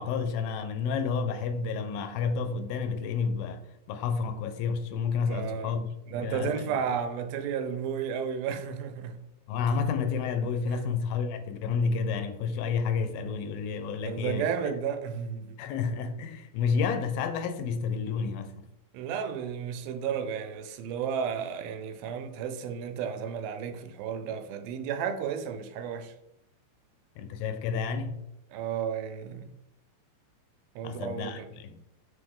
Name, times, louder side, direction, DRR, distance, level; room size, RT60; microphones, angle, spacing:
voice 1, 0.0-3.6 3.9-6.8 9.5-14.4 15.6-18.5 27.2-28.2 30.8-31.8, left 5 dB, 75° left, 2.5 m, -30 dB
voice 2, 5.2-5.8 6.1-9.3 10.7-10.9 14.0-15.6 18.9-26.1 28.5-29.5 30.8-31.5, right 7 dB, 80° right, 2.6 m, -33 dB
7.7 x 6.7 x 3.7 m
omnidirectional pair, 4.4 m